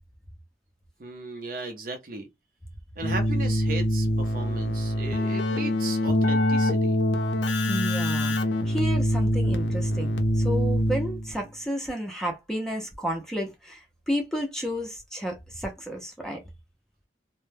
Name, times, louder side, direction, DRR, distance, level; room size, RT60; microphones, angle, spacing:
voice 1, 1.0-2.3 3.0-7.0, right 3 dB, 50° right, 0.6 m, -36 dB
Keyboard (musical), 3.0-11.4, left 1 dB, 75° left, 0.5 m, -24 dB
voice 2, 7.7-8.4 8.7-16.4, equal, 5° left, 0.5 m, -32 dB
2.2 x 2.1 x 3.2 m
head